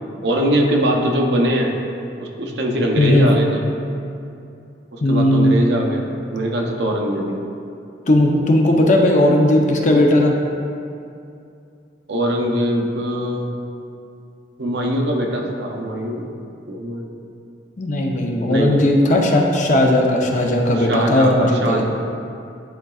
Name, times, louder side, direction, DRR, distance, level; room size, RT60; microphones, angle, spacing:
voice 1, 0.2-1.7 2.2-3.6 4.9-7.4 12.1-13.5 14.6-16.3 16.7-17.1 18.5-18.9 20.8-21.8, equal, 60° right, 1 dB, 0.7 m, -21 dB
voice 2, 3.0-3.3 5.0-5.6 8.1-10.3 17.8-21.8, left 1 dB, 40° left, 1 dB, 0.6 m, -16 dB
10.5 x 3.8 x 2.4 m, 2.5 s
head